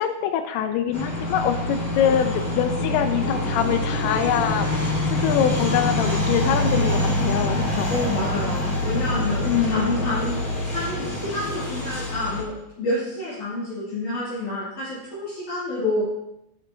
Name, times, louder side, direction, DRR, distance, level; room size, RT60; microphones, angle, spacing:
voice 1, 0.0-7.9 9.4-10.1, left 9 dB, 80° left, 8 dB, 2.5 m, -24 dB
sound 1, 0.9-12.4, left 1 dB, 30° left, 4.0 m, -25 dB
voice 2, 7.9-10.4 10.6-16.0, left 1 dB, 50° left, -9 dB, 3.6 m, -28 dB
14.0 x 8.5 x 2.7 m, 0.87 s
omnidirectional pair, 4.9 m